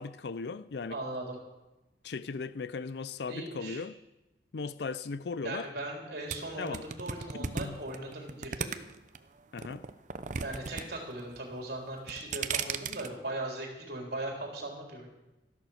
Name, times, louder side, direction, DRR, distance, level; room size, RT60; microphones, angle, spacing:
voice 1, 0.0-1.0 2.0-3.9 4.5-5.7 6.6-6.8 7.4-7.8 9.5-9.8, left 4 dB, 70° left, 0.5 m, -37 dB
voice 2, 0.9-1.4 3.3-3.8 5.4-8.8 10.4-15.1, right 2 dB, 60° right, 3.9 m, -39 dB
sound 1, 6.3-9.2 9.6-10.8 11.1-11.6 12.0-13.1, right 6 dB, 45° right, 0.7 m, -35 dB
13.5 x 11.5 x 6.4 m
head